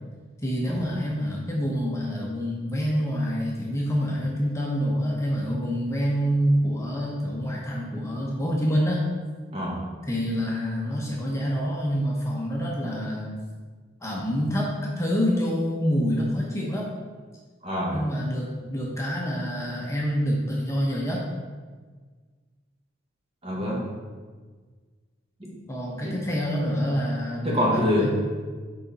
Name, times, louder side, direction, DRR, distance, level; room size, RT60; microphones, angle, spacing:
voice 1, 0.4-9.1 10.1-13.3 14.0-16.9 17.9-21.2 25.7-28.1, equal, 15° left, -4 dB, 0.9 m, -27 dB
voice 2, 9.5-9.8 17.6-18.0 23.4-23.9 25.4-25.5 26.0-26.2 27.4-28.1, left 1 dB, 30° right, -3 dB, 1.4 m, -26 dB
6.4 x 5.0 x 4.0 m, 1.5 s
head